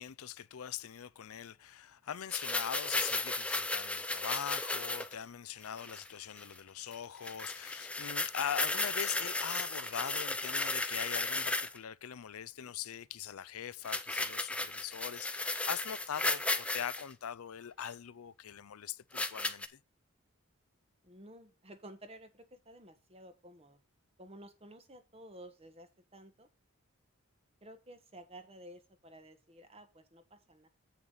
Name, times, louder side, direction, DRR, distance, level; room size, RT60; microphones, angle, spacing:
voice 1, 0.0-19.8, left 9 dB, 85° left, 0.5 m, -42 dB
sound 1, 2.3-5.1 5.6-6.1 6.4-6.6 6.9-7.0 7.2-11.8 13.8-17.0 17.9-18.0 19.1-19.7, left 2 dB, 5° left, 0.5 m, -35 dB
voice 2, 21.0-23.8 24.2-26.5 27.6-30.7, right 1 dB, 25° right, 1.2 m, -53 dB
8.1 x 7.1 x 3.9 m
head